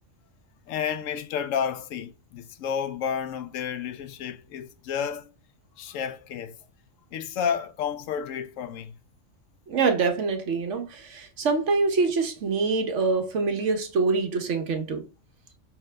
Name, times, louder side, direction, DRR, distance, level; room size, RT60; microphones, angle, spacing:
voice 1, 0.7-5.3 5.8-6.6 7.1-9.0, left 7 dB, 90° left, 1.0 m, -31 dB
voice 2, 9.7-15.0, right 4 dB, 70° right, 1.1 m, -25 dB
5.7 x 2.8 x 3.3 m
omnidirectional pair, 1.3 m